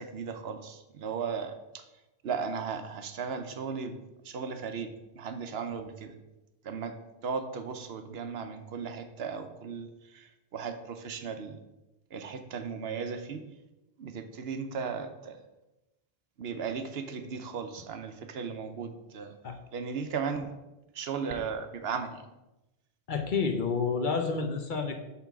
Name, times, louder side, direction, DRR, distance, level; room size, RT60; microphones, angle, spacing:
voice 1, 0.0-1.8 2.2-4.0 4.2-6.2 6.6-7.0 7.2-11.6 12.1-13.4 14.0-15.4 16.4-19.4 19.7-20.5 20.9-22.2, right 6 dB, 70° right, 8 dB, 0.9 m, -36 dB
voice 2, 23.1-25.0, left 5 dB, 55° left, 5 dB, 0.8 m, -29 dB
5.7 x 3.8 x 6.0 m, 0.99 s
omnidirectional pair, 1.1 m